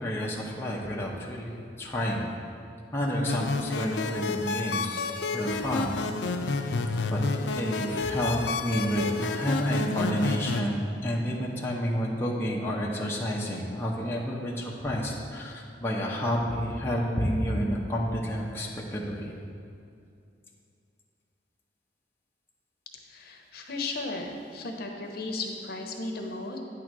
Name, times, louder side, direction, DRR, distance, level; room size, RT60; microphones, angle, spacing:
voice 1, 0.0-2.3 2.9-5.1 5.3-6.0 6.6-6.8 7.0-19.3, equal, 15° left, -4 dB, 0.8 m, -30 dB
sound 1, 3.3-10.6, left 3 dB, 85° left, 0.4 m, -30 dB
voice 2, 23.1-26.6, left 2 dB, 60° left, 2 dB, 0.9 m, -35 dB
9.3 x 3.9 x 6.1 m, 2.5 s
head